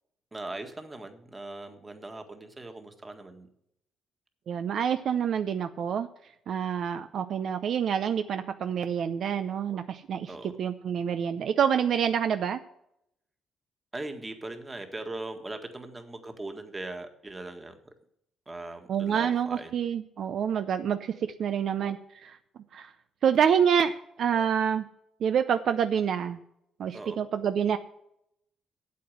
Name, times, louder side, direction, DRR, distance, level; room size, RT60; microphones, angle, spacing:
voice 1, 0.3-3.5 10.3-10.5 13.9-17.8 18.5-19.7 26.9-27.2, right 2 dB, 20° right, 6 dB, 1.7 m, -40 dB
voice 2, 4.5-6.1 6.5-12.6 18.9-21.1 21.4-22.0 22.2-22.4 22.7-22.9 23.2-24.9 25.2-26.4 26.8-27.8, right 8 dB, 65° right, 9 dB, 0.6 m, -27 dB
8.5 x 7.9 x 7.8 m, 0.76 s
cardioid pair, 90°, 0 cm